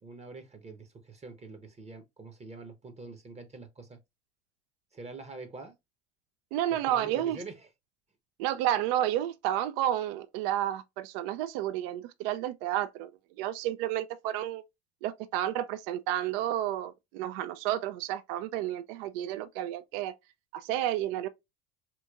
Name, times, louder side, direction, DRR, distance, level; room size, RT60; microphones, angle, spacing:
voice 1, 0.0-4.0 4.9-5.7 6.9-7.7, right 3 dB, 20° right, 0.8 m, -45 dB
voice 2, 6.5-7.4 8.4-13.1 13.4-14.6 15.0-20.1 20.5-21.3, right 12 dB, 60° right, 0.5 m, -31 dB
4.2 x 3.0 x 2.3 m
hypercardioid pair, 65°, 32 cm